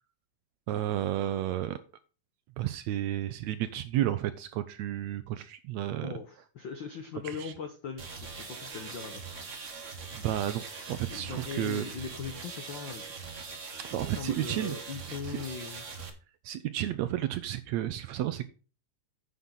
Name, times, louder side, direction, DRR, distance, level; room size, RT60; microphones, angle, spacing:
voice 1, 0.7-1.8 2.6-6.1 7.3-7.5 10.1-11.9 13.9-14.8 15.3-15.4 16.5-18.4, right 13 dB, 80° right, 12 dB, 1.7 m, -32 dB
voice 2, 6.0-9.3 11.1-13.0 14.1-15.8, left 6 dB, 75° left, 6 dB, 1.0 m, -40 dB
sound 1, 8.0-16.1, right 5 dB, 55° right, 0.8 m, -42 dB
9.5 x 7.3 x 3.9 m, 0.35 s
omnidirectional pair, 3.6 m